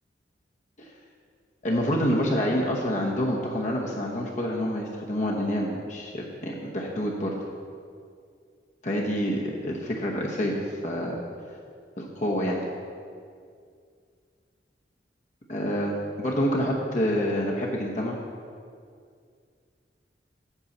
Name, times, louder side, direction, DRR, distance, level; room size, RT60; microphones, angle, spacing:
voice 1, 1.6-7.3 8.8-11.2 12.0-12.6 15.5-18.2, equal, 45° left, -2 dB, 0.9 m, -27 dB
8.2 x 5.4 x 7.2 m, 2.2 s
head